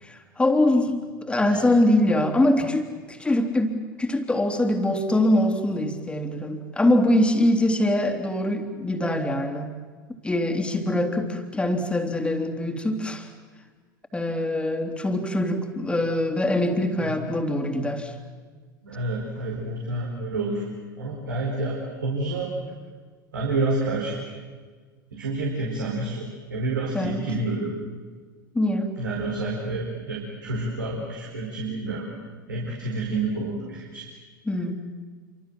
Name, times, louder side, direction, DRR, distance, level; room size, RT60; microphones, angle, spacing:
voice 1, 0.0-9.7 10.2-13.3 14.1-18.1 26.9-27.2 28.5-28.9 34.4-34.7, left 1 dB, 10° left, 5 dB, 3.2 m, -23 dB
voice 2, 18.8-20.6 21.0-22.5 23.3-24.2 25.1-27.8 29.0-32.0 32.5-34.1, right 2 dB, 75° right, -2 dB, 4.9 m, -29 dB
28.5 x 25.0 x 7.7 m, 1.5 s
figure-of-eight pair, 80°, 11 cm